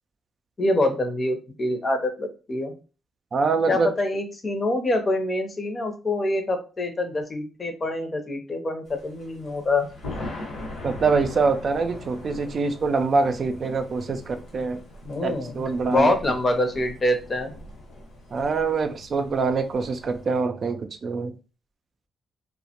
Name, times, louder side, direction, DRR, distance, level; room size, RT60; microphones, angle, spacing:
voice 1, 0.6-2.7 3.7-9.9 15.0-15.6 15.9-17.5, left 1 dB, 40° left, 0.6 m, -25 dB
voice 2, 3.3-3.9 10.8-14.8 15.2-16.1 18.3-21.3, right 4 dB, 55° right, 0.3 m, -24 dB
Thunder, 8.9-20.4, left 1 dB, 85° left, 0.9 m, -41 dB
2.1 x 2.1 x 2.8 m
supercardioid pair, 55°, 0 cm